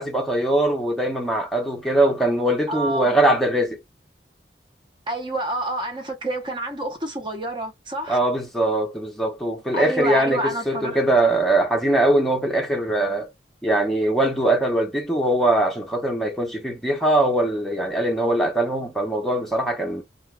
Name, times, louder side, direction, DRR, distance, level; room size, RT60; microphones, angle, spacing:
voice 1, 0.0-3.8 8.1-13.3 13.6-20.0, right 1 dB, ahead, 0.8 m, -21 dB
voice 2, 2.7-3.2 5.1-8.2 9.7-11.0, right 1 dB, 25° right, 0.8 m, -28 dB
2.4 x 2.4 x 3.3 m
head